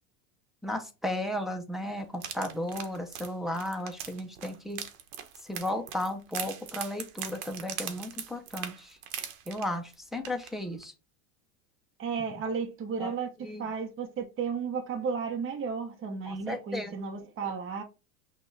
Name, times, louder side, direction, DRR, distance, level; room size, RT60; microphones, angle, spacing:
voice 1, 0.6-4.8 5.4-9.0 9.5-10.9 13.0-13.1 13.4-13.7 16.2-16.9, left 1 dB, ahead, 0.4 m, -34 dB
sound 1, 2.1-9.9 10.2-10.5 10.8-10.9, right 9 dB, 65° right, 1.0 m, -40 dB
voice 2, 12.0-17.8, right 5 dB, 25° right, 0.9 m, -33 dB
6.1 x 2.4 x 3.2 m
supercardioid pair, 115°, 45 cm